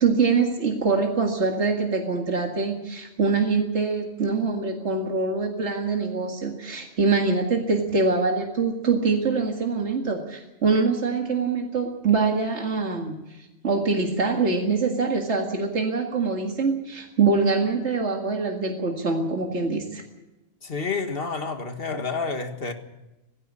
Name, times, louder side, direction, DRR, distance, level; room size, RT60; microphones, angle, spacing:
voice 1, 0.0-20.0, right 4 dB, 80° right, 2.3 m, -24 dB
voice 2, 20.6-22.7, left 4 dB, 55° left, 2.0 m, -29 dB
17.5 x 16.0 x 9.8 m
omnidirectional pair, 1.2 m